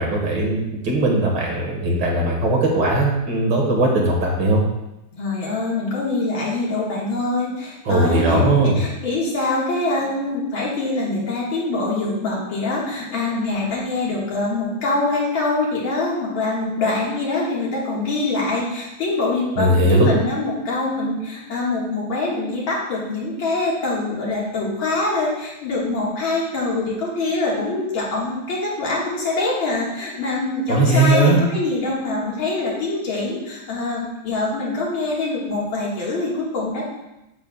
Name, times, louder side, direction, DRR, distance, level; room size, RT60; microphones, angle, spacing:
voice 1, 0.0-4.6 7.9-8.8 19.6-20.1 30.7-31.4, right 2 dB, 65° right, -1 dB, 2.2 m, -18 dB
voice 2, 5.1-8.4 8.8-36.8, left 2 dB, 85° left, -4 dB, 2.6 m, -24 dB
8.1 x 7.5 x 2.3 m, 0.92 s
omnidirectional pair, 2.1 m